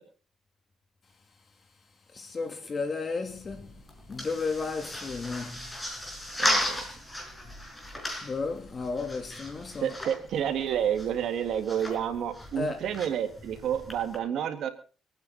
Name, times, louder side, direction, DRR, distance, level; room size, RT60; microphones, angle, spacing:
voice 1, 2.1-3.7 4.1-5.7 8.2-10.0 12.6-12.8, left 4 dB, 40° left, 3.0 m, -33 dB
sound 1, 3.3-14.2, left 1 dB, 15° left, 5.9 m, -36 dB
voice 2, 6.4-6.8 9.8-14.7, right 9 dB, 75° right, 2.0 m, -30 dB
25.5 x 9.5 x 4.1 m
cardioid pair, 90°, 0 cm